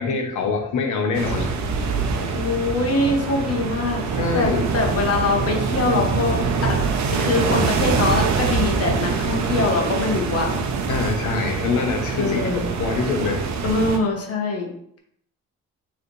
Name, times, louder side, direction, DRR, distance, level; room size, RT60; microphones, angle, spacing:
voice 1, 0.0-1.5 4.2-4.6 10.9-12.4 12.8-13.5, left 4 dB, 75° left, 3 dB, 1.0 m, -24 dB
sound 1, 1.1-14.0, right 4 dB, 65° right, 0.7 m, -24 dB
voice 2, 2.3-6.8 7.1-10.5 12.1-12.7 13.6-14.7, left 3 dB, 55° left, 1 dB, 1.1 m, -23 dB
4.8 x 3.3 x 3.2 m, 0.69 s
cardioid pair, 90°, 30 cm